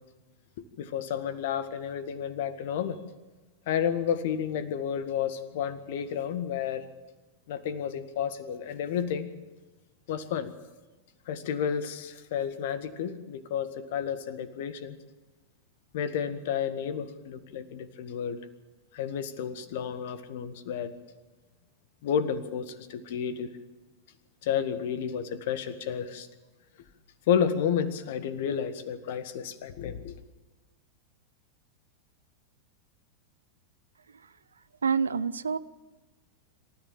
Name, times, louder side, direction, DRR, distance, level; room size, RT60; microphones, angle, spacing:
voice 1, 0.8-3.0 3.7-6.8 7.5-9.3 10.1-10.5 11.3-15.0 15.9-18.4 18.9-20.9 22.0-23.6 24.4-26.3 27.3-30.2, left 8 dB, 55° left, 12 dB, 1.7 m, -31 dB
voice 2, 34.8-35.6, right 6 dB, 70° right, 15 dB, 0.7 m, -27 dB
26.5 x 14.0 x 7.5 m, 1.2 s
figure-of-eight pair, 90°, 0 cm